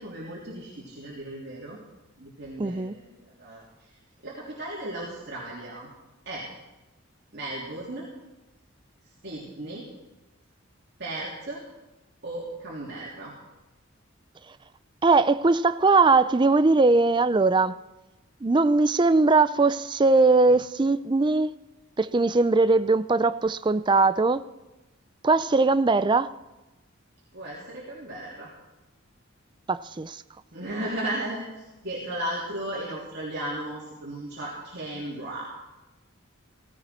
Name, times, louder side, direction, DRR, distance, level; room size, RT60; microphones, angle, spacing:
voice 1, 0.0-1.8 2.2-3.1 3.4-3.9 4.2-5.9 6.2-6.5 7.3-8.0 9.2-9.9 11.0-11.6 12.2-13.3 27.3-28.5 30.5-35.5, right 1 dB, 50° right, 3.2 m, -35 dB
voice 2, 2.6-2.9 15.0-17.7 18.4-21.5 22.0-24.4 25.2-26.3 29.7-30.2, right 3 dB, 20° right, 0.4 m, -20 dB
16.5 x 16.5 x 4.4 m
head